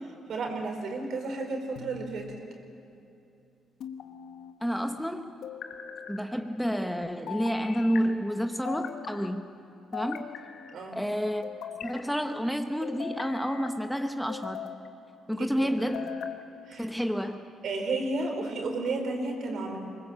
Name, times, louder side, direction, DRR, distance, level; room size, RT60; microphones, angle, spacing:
voice 1, 0.0-2.3 10.7-11.0 15.3-15.8 16.7-16.9 17.6-19.8, right 3 dB, 65° right, 3 dB, 4.1 m, -33 dB
sound 1, 1.8-2.4 3.8-4.6 5.4-6.2 7.3-8.0 8.6-9.3 9.9-10.8 11.4-12.1 12.8-13.7 14.3-14.9 15.6-16.4, left 8 dB, 75° left, 1.2 m, -40 dB
voice 2, 4.6-5.3 6.1-9.5 9.9-10.3 10.9-11.5 11.8-14.7 15.3-16.1 16.8-17.4, equal, ahead, 6 dB, 1.0 m, -30 dB
23.5 x 20.5 x 7.4 m, 2.7 s
cardioid pair, 90°, 0 cm